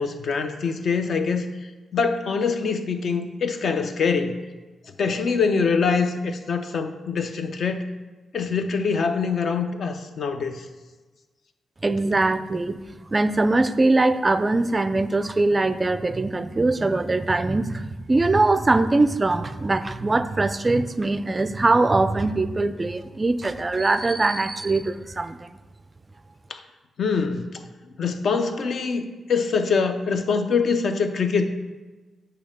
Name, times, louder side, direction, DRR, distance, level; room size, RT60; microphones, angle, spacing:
voice 1, 0.0-1.5 1.9-4.3 5.0-7.8 8.3-10.6 26.5-26.6 27.0-27.4 28.0-31.5, left 5 dB, 60° left, 6 dB, 0.7 m, -24 dB
voice 2, 11.8-12.8 13.1-25.5, right 2 dB, 25° right, 12 dB, 0.4 m, -22 dB
8.4 x 3.3 x 6.5 m, 1.2 s
cardioid pair, 105°, 0 cm